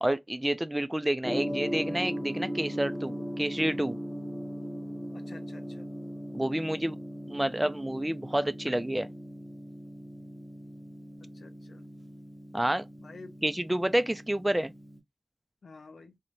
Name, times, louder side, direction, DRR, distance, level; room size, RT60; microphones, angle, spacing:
voice 1, 0.0-4.0 6.3-7.0 7.3-9.1 12.5-12.9 13.4-14.7, right 1 dB, 15° right, 0.3 m, -29 dB
Gong, 1.2-15.0, equal, 20° left, 0.8 m, -39 dB
voice 2, 5.1-5.9 11.3-11.9 13.0-13.3 15.6-16.1, left 3 dB, 90° left, 0.5 m, -50 dB
2.6 x 2.0 x 2.9 m
wide cardioid pair, 60°, 0 cm